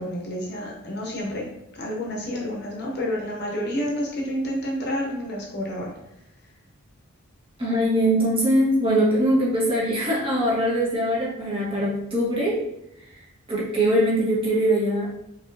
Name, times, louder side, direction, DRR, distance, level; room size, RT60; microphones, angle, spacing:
voice 1, 0.0-1.4 1.7-5.9, equal, 50° left, -2 dB, 1.0 m, -29 dB
voice 2, 7.6-12.6 13.5-15.2, equal, 25° right, -6 dB, 1.4 m, -22 dB
5.1 x 3.1 x 2.7 m, 0.82 s
head